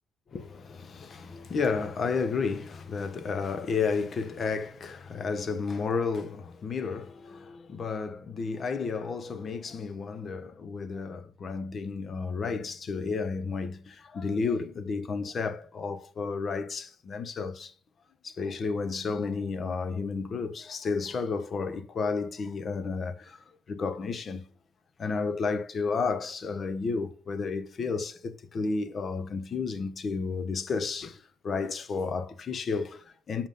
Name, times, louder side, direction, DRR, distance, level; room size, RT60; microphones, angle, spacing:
voice 1, 0.3-17.7 18.2-24.5 25.0-33.5, left 4 dB, 40° left, 1.0 m, -32 dB
7.0 x 5.6 x 5.1 m
cardioid pair, 120°, 0 cm